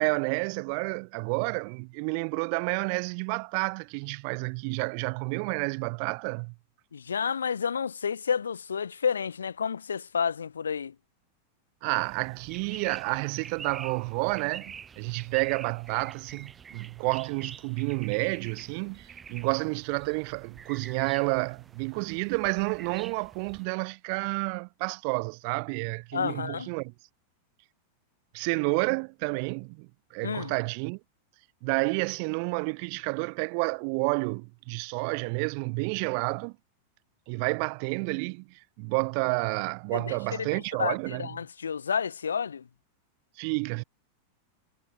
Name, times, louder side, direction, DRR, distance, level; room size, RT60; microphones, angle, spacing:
voice 1, 0.0-6.5 11.8-26.9 28.3-31.0 31.6-36.6 37.3-41.3 43.4-43.8, right 40 dB or more, 45° right, 1.1 m, -30 dB
voice 2, 6.9-10.9 26.1-26.7 30.2-30.5 39.9-42.6, left 6 dB, 70° left, 1.1 m, -30 dB
sound 1, 12.0-23.6, right 7 dB, 20° right, 3.5 m, -47 dB
figure-of-eight pair, 90°, 0 cm